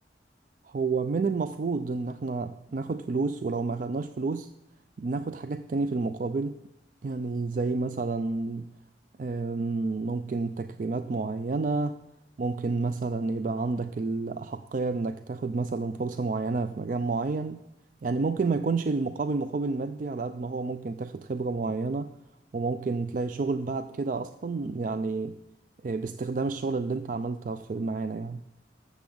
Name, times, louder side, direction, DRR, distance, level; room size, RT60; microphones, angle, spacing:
voice 1, 0.6-4.5 5.0-6.6 7.0-8.7 9.2-12.0 12.4-17.6 18.0-22.2 22.5-25.4 25.8-28.4, right 3 dB, 45° right, 0.4 m, -30 dB
10.5 x 7.2 x 7.7 m
head